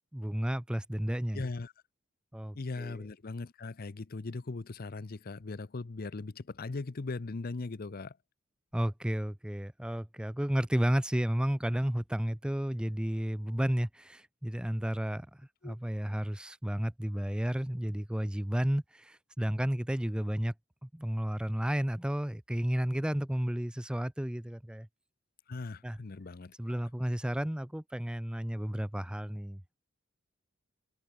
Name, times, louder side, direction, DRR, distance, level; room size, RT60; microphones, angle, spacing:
voice 1, 0.1-1.4 2.3-3.0 8.7-20.5 20.8-24.9 25.8-26.0 26.6-29.8, equal, 5° right, 0.4 m, -32 dB
voice 2, 1.3-1.7 2.5-8.2 15.6-15.8 25.5-26.8, left 3 dB, 50° left, 0.6 m, -39 dB
head